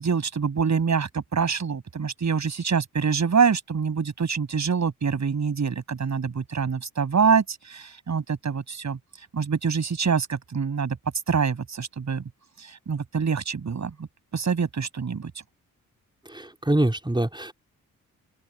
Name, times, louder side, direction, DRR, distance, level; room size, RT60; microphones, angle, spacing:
voice 1, 0.0-9.0 9.3-11.0 11.3-12.2 12.6-15.3, right 6 dB, 55° right, 8.0 m, -25 dB
voice 2, 16.3-17.5, right 1 dB, 15° right, 4.6 m, -24 dB
open air
supercardioid pair, 55°, 34 cm